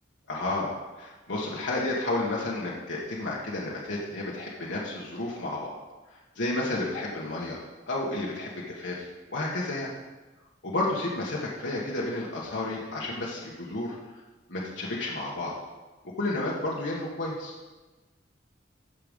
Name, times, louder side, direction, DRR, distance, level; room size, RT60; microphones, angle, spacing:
voice 1, 0.3-5.7 6.1-7.6 7.9-9.9 10.6-14.0 14.5-15.5 16.2-17.5, left 2 dB, 85° left, -5 dB, 1.6 m, -31 dB
13.5 x 5.1 x 5.5 m, 1.2 s
head